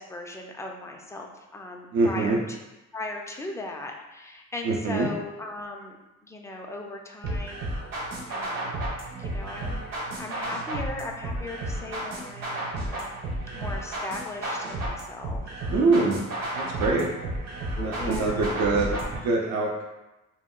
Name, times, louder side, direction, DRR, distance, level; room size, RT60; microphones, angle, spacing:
voice 1, 0.0-2.4 2.9-6.0 6.2-7.7 8.3-8.8 9.1-13.2 13.5-15.5 18.0-18.5, left 2 dB, 10° left, 1 dB, 0.3 m, -38 dB
voice 2, 1.9-2.4 4.6-5.1 15.7-16.2 16.5-17.1 17.7-19.9, right 3 dB, 70° right, -1 dB, 0.5 m, -24 dB
sound 1, 7.2-19.2, right 1 dB, 55° right, 1.0 m, -32 dB
2.2 x 2.0 x 3.6 m, 1.0 s
cardioid pair, 90°, 30 cm